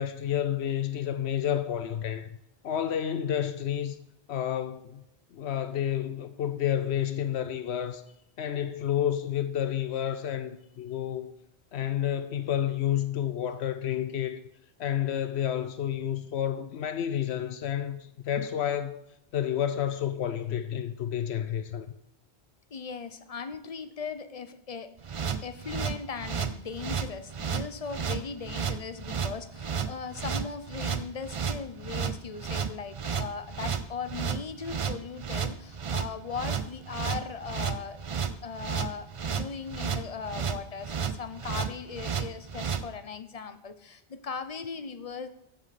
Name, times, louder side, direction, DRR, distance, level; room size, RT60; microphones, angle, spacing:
voice 1, 0.0-2.4 2.6-4.0 4.3-5.0 5.3-8.0 8.4-11.3 11.7-14.4 14.8-19.0 19.3-21.9, left 10 dB, 80° left, 0.9 m, -30 dB
voice 2, 22.7-24.9 25.4-38.0 38.4-45.3, left 5 dB, 40° left, 0.7 m, -38 dB
sound 1, 25.0-42.8, right 6 dB, 40° right, 0.5 m, -32 dB
14.5 x 7.7 x 4.2 m
omnidirectional pair, 1.1 m